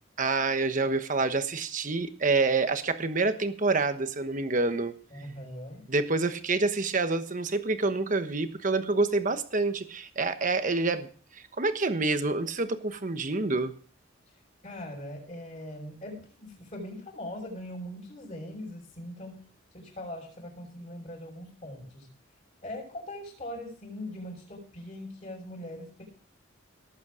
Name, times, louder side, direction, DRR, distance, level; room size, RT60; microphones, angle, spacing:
voice 1, 0.2-4.9 5.9-11.1 11.3-13.7, right 3 dB, 40° right, 9 dB, 1.2 m, -27 dB
voice 2, 5.1-5.8 14.6-19.4 19.7-22.1 22.6-26.0, left 1 dB, 35° left, -6 dB, 5.9 m, -41 dB
18.5 x 8.4 x 5.0 m, 0.43 s
head